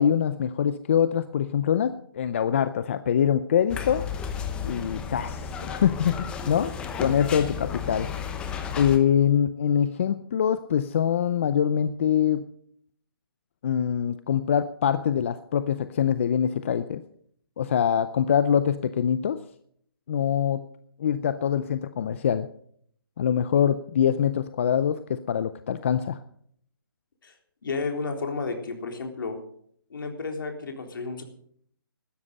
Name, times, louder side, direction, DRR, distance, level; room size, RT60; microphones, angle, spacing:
voice 1, 0.0-4.1 4.6-6.7 7.0-8.1 8.8-12.5 13.6-17.0 17.6-19.4 20.1-20.7 21.0-22.5 23.2-26.2, left 8 dB, 30° left, 13 dB, 0.5 m, -24 dB
sound 1, 3.7-9.0, left 7 dB, 10° left, 0.9 m, -33 dB
voice 2, 27.6-29.4 29.9-31.2, left 4 dB, 65° left, 3 dB, 3.9 m, -32 dB
16.0 x 12.5 x 5.4 m, 0.64 s
hypercardioid pair, 165°, 12 cm